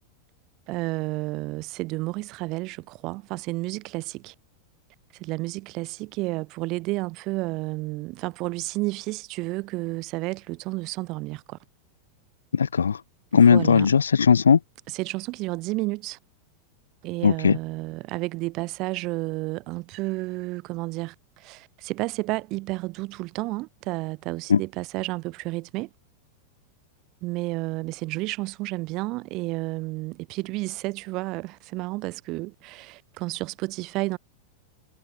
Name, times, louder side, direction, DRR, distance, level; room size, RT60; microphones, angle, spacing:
voice 1, 0.7-4.3 5.2-11.6 13.5-13.9 14.9-16.2 17.0-25.9 27.2-34.2, right 22 dB, 40° right, 4.4 m, -31 dB
voice 2, 12.5-13.0 13.3-14.6 17.2-17.6 24.5-24.6, left 6 dB, 70° left, 0.9 m, -18 dB
figure-of-eight pair, 90°, 0 cm